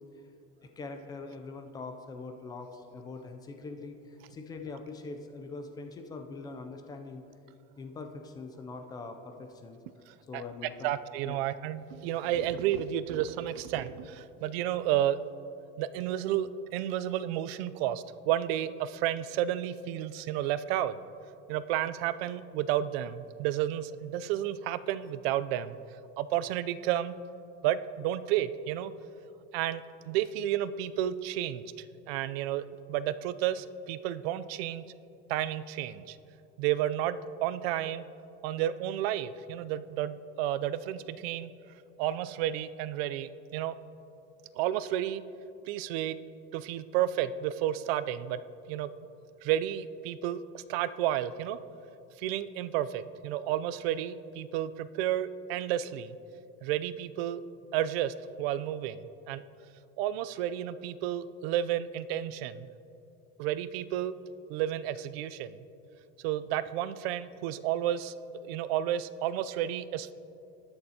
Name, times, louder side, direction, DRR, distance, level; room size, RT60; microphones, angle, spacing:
voice 1, 0.6-7.2 7.8-9.8 10.3-10.9 11.2-11.4, left 3 dB, 15° left, 5 dB, 0.3 m, -43 dB
voice 2, 10.8-15.2 15.8-21.0 21.5-25.8 26.2-27.2 27.6-28.9 29.5-34.8 35.3-36.2 36.6-38.0 38.4-41.5 42.0-43.8 44.6-45.2 45.7-46.2 46.5-48.4 48.7-48.9 49.4-51.6 52.2-56.2 56.6-57.4 57.7-59.4 60.0-62.7 63.4-64.2 64.5-65.6 66.2-68.1 68.4-70.1, right 12 dB, 90° right, 15 dB, 0.5 m, -31 dB
19.5 x 6.6 x 2.8 m, 2.8 s
cardioid pair, 175°, 29 cm